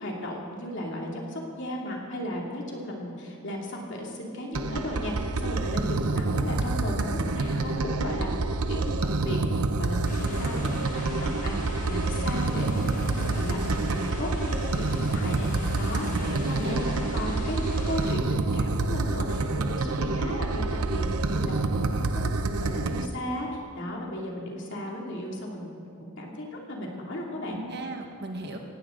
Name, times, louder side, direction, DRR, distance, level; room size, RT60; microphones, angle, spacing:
voice 1, 0.0-8.3 8.7-13.6 13.9-16.0 16.3-16.8 17.1-17.6 17.8-22.1 22.4-27.6, left 1 dB, 55° left, -1 dB, 2.8 m, -35 dB
sound 1, 4.5-23.1, right 3 dB, 85° right, 0.8 m, -27 dB
sound 2, 10.0-18.2, left 2 dB, 35° left, 1.6 m, -40 dB
voice 2, 16.0-17.0 19.9-20.2 27.4-28.6, right 1 dB, 50° right, 2 dB, 1.6 m, -36 dB
18.0 x 16.5 x 3.9 m, 2.4 s
head